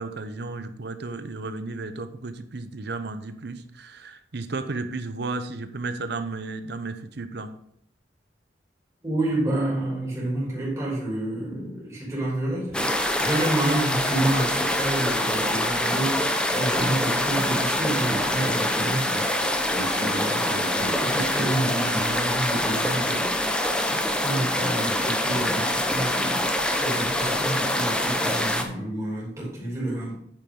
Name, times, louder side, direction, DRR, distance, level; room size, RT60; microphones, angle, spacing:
voice 1, 0.0-7.5, right 3 dB, 60° right, 10 dB, 0.8 m, -33 dB
voice 2, 9.0-19.3 19.7-30.1, right 1 dB, 15° right, -6 dB, 3.1 m, -29 dB
sound 1, 12.7-28.6, left 1 dB, 5° left, 0.8 m, -25 dB
8.8 x 7.0 x 3.8 m, 0.71 s
head